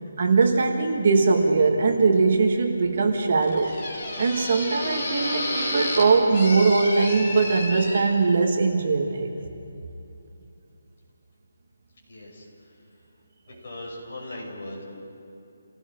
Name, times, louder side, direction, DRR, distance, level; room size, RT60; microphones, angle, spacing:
voice 1, 0.2-3.7 4.2-9.3, right 4 dB, 40° right, 3 dB, 1.5 m, -21 dB
bm doorsqueak, 1.8-8.0, left 1 dB, 25° left, 4.3 m, -32 dB
voice 2, 12.1-12.4 13.6-14.8, left 1 dB, 40° left, -4 dB, 6.8 m, -38 dB
28.5 x 18.0 x 5.2 m, 2.9 s
hypercardioid pair, 180°, 0 cm